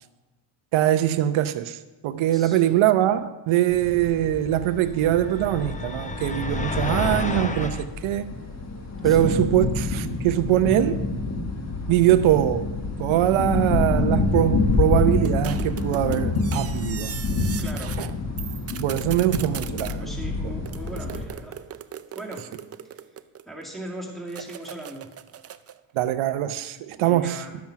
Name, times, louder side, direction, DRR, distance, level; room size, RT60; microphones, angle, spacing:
voice 1, 0.7-7.8 8.0-8.4 9.0-11.1 11.9-12.7 13.0-17.1 18.0-18.1 18.8-20.2 25.9-27.4, right 12 dB, 90° right, 0.8 m, -22 dB
voice 2, 2.3-2.8 9.0-9.4 17.6-18.0 20.0-21.6 22.2-25.1 27.0-27.6, right 1 dB, ahead, 2.2 m, -39 dB
sound 1, 3.7-21.3, left 3 dB, 35° left, 1.6 m, -27 dB
sound 2, 4.9-7.9, left 3 dB, 15° left, 0.7 m, -30 dB
sound 3, 15.3-18.1 18.4-20.0 20.7-23.6 24.3-25.8, right 9 dB, 35° right, 0.5 m, -39 dB
12.0 x 7.6 x 5.8 m
cardioid pair, 100°, 47 cm